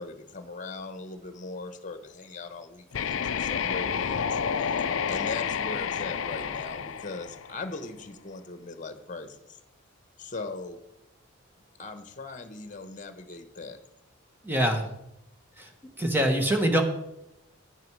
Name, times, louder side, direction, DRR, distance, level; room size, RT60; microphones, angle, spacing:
voice 1, 0.0-4.7 5.1-9.6 10.2-10.8 11.8-13.8, left 3 dB, 40° left, 9 dB, 1.1 m, -39 dB
sound 1, 2.9-7.8, left 7 dB, 85° left, 0.5 m, -30 dB
voice 2, 14.4-14.9 15.6-15.7 16.0-16.8, right 1 dB, 10° right, 4 dB, 1.5 m, -24 dB
10.5 x 10.0 x 4.8 m, 0.84 s
head